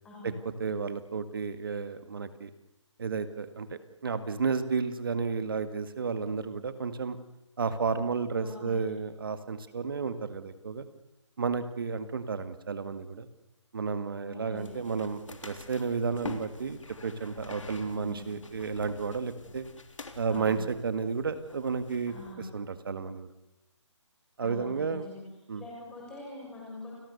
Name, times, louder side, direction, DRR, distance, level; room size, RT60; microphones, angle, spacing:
voice 1, 0.0-0.4 8.4-8.8 14.3-14.8 17.8-18.3 20.3-20.7 22.1-22.4 24.4-25.2 25.6-26.9, left 2 dB, 5° left, -4 dB, 7.1 m, -44 dB
voice 2, 0.6-2.5 3.0-7.2 7.6-10.9 11.4-13.3 13.7-19.6 20.2-23.3 24.4-25.1 25.5-25.6, right 5 dB, 45° right, 11 dB, 1.9 m, -32 dB
sound 1, 14.6-22.3, left 3 dB, 90° left, 3.4 m, -46 dB
29.5 x 19.0 x 7.0 m, 0.98 s
hypercardioid pair, 170°, 16 cm